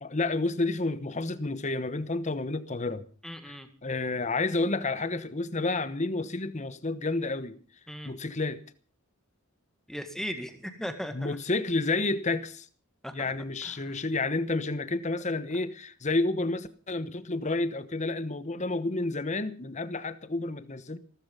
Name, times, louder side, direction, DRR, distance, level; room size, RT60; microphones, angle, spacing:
voice 1, 0.0-3.0 3.5-7.6 8.0-8.6 11.1-12.7 13.1-21.0, left 2 dB, 35° left, 1.1 m, -30 dB
voice 2, 3.2-3.7 7.9-8.1 9.9-11.4 13.0-13.3 13.6-13.7, equal, ahead, 1.9 m, -37 dB
17.0 x 14.5 x 5.5 m
head